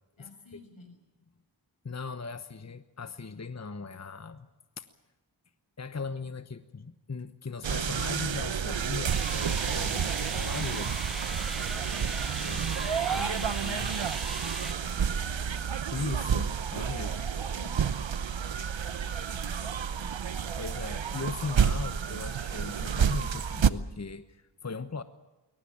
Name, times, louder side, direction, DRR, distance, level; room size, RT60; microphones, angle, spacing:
voice 1, 0.2-1.0 13.1-13.9 14.8-15.7 16.9-20.1, left 3 dB, 85° left, 5 dB, 6.2 m, -53 dB
voice 2, 1.8-4.5 4.8-4.9 5.8-11.0 12.4-14.0 15.9-17.1 20.6-25.0, left 4 dB, 35° left, 11 dB, 1.1 m, -38 dB
sound 1, 7.6-23.7, right 7 dB, 70° right, 1.0 m, -30 dB
sound 2, 9.1-14.7, equal, ahead, 0.9 m, -40 dB
22.0 x 19.0 x 8.6 m, 1.1 s
wide cardioid pair, 50°, 46 cm